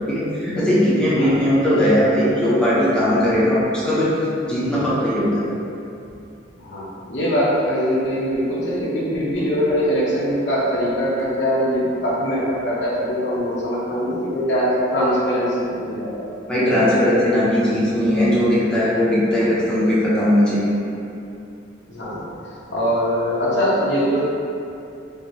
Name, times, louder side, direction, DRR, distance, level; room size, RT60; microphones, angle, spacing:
voice 1, 0.1-4.2 4.5-5.4 16.5-20.7, equal, 5° left, -10 dB, 0.6 m, -18 dB
voice 2, 6.6-16.3 21.9-22.3 22.7-24.3, equal, 65° left, -7 dB, 0.8 m, -22 dB
4.5 x 2.1 x 2.7 m, 2.7 s
head